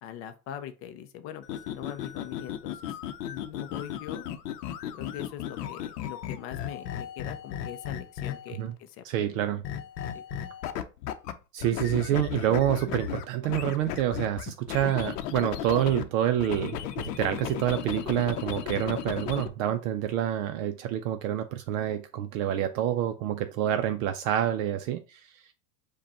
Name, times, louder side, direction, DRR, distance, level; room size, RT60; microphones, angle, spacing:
voice 1, 0.0-3.0 3.3-4.2 4.9-9.4 10.1-10.2, left 10 dB, 30° left, 0.4 m, -42 dB
sound 1, 1.4-8.6 9.6-11.3 11.6-16.0 16.4-19.5, left 10 dB, 75° left, 0.7 m, -35 dB
voice 2, 9.0-9.6 11.5-25.5, right 11 dB, 60° right, 0.5 m, -28 dB
5.1 x 2.3 x 4.0 m
supercardioid pair, 135°, 48 cm